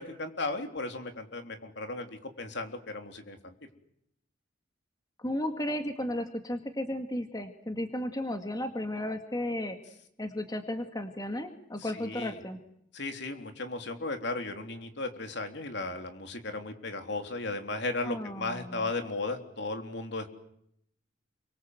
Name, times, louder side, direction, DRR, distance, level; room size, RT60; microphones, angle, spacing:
voice 1, 0.0-3.5 11.8-12.4 12.9-20.3, left 2 dB, 65° left, 6 dB, 3.5 m, -36 dB
voice 2, 5.2-9.8 10.2-12.6 18.0-18.9, left 1 dB, 20° left, 6 dB, 2.1 m, -34 dB
29.5 x 24.0 x 8.0 m, 0.74 s
head